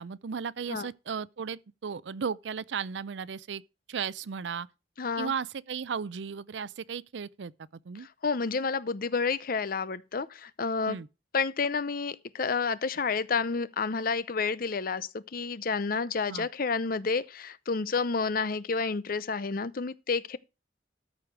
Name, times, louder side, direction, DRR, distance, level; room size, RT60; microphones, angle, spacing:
voice 1, 0.0-3.6 3.9-4.7 5.2-8.1 10.9-11.1 16.3-16.5, right 6 dB, 85° right, 0.5 m, -35 dB
voice 2, 5.0-5.3 8.2-11.0 11.3-20.4, left 4 dB, 55° left, 0.7 m, -30 dB
13.5 x 4.9 x 6.1 m
head